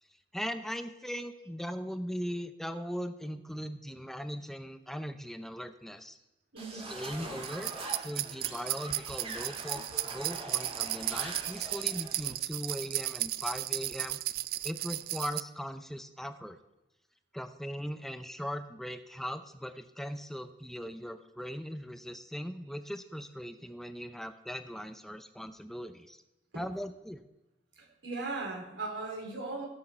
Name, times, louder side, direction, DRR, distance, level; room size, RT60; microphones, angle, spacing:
voice 1, 0.3-6.2 6.7-7.7 8.0-14.2 14.6-16.6 17.3-26.2 26.5-27.2, equal, ahead, 10 dB, 0.6 m, -39 dB
voice 2, 6.5-6.9 26.5-26.6 27.8-29.7, right 3 dB, 85° right, -1 dB, 3.9 m, -38 dB
sound 1, 6.6-12.3, right 2 dB, 35° right, 2.0 m, -43 dB
sound 2, 7.4-15.4, right 16 dB, 55° right, 0.3 m, -35 dB
16.5 x 6.4 x 4.4 m, 0.94 s
head